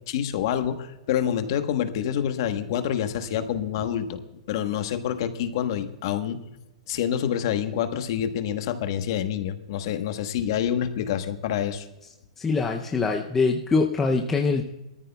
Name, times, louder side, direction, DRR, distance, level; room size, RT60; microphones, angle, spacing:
voice 1, 0.1-4.2 4.5-6.4 6.9-11.9, left 9 dB, 40° left, 8 dB, 1.1 m, -27 dB
voice 2, 12.4-14.6, left 4 dB, 10° left, 1 dB, 0.5 m, -23 dB
21.5 x 14.0 x 2.3 m, 0.96 s
hypercardioid pair, 170°, 4 cm